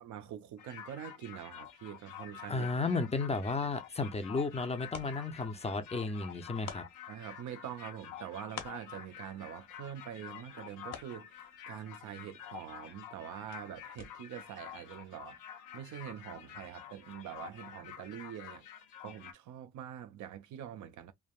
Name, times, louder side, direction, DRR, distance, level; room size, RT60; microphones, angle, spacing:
voice 1, 0.0-3.0 7.1-15.4 15.7-18.7 19.0-21.1, right 10 dB, 70° right, 0.6 m, -45 dB
sound 1, 0.6-19.3, left 10 dB, 85° left, 0.7 m, -49 dB
voice 2, 2.5-6.8, left 3 dB, 20° left, 0.5 m, -33 dB
sound 2, 3.8-14.5, left 7 dB, 60° left, 1.0 m, -53 dB
3.3 x 2.1 x 2.3 m
cardioid pair, 90°, 30 cm